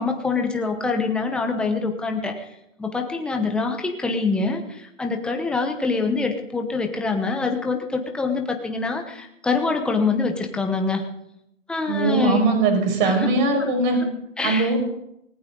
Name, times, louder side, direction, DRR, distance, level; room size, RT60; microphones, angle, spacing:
voice 1, 0.0-2.5 2.8-11.0 11.7-12.4 13.0-13.3 13.6-13.7 14.4-14.7, left 4 dB, ahead, 4 dB, 0.9 m, -25 dB
voice 2, 11.9-14.0 14.4-14.8, right 3 dB, 35° right, 4 dB, 5.3 m, -20 dB
19.5 x 19.0 x 3.9 m, 0.80 s
hypercardioid pair, 150°, 39 cm